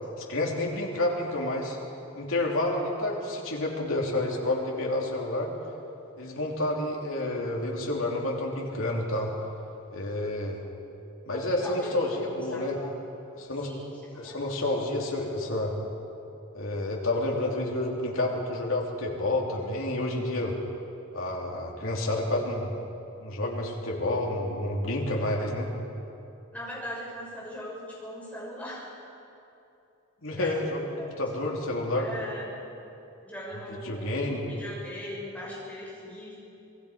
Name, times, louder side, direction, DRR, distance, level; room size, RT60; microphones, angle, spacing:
voice 1, 0.3-1.8 2.1-5.5 6.2-9.3 9.9-10.6 11.2-12.8 13.3-13.7 14.1-15.7 16.5-20.6 21.1-22.8 23.2-25.7 30.2-32.1 33.8-34.5, left 1 dB, 75° left, -1 dB, 3.2 m, -29 dB
voice 2, 11.3-12.9 13.6-14.3 26.5-28.8 30.4-30.5 31.0-31.2 31.9-32.5 33.2-36.4, left 1 dB, 5° left, -6 dB, 6.5 m, -40 dB
27.0 x 19.5 x 5.1 m, 2.8 s
head